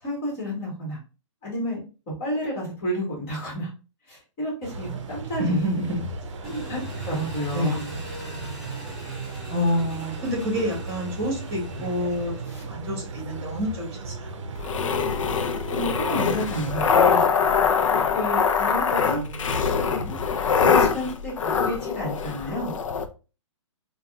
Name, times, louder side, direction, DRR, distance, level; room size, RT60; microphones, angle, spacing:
voice 1, 0.0-1.0 1.4-1.8 2.2-3.7 4.1-5.8 6.4-6.8 7.0-7.8 12.5-12.6 15.7-17.2 17.9-19.2 20.6-22.7, equal, 25° left, -4 dB, 1.7 m, -30 dB
sound 1, 4.6-17.3, right 3 dB, 70° right, 0.6 m, -36 dB
voice 2, 5.4-6.1 7.5-8.1 9.5-12.3 12.6-14.4 19.1-20.2, equal, 15° right, -1 dB, 1.4 m, -28 dB
Engine, 6.4-12.9, equal, 5° left, 1.5 m, -42 dB
sound 2, 14.6-23.1, left 6 dB, 85° left, 0.5 m, -23 dB
3.9 x 2.4 x 2.3 m, 0.32 s
hypercardioid pair, 165°, 16 cm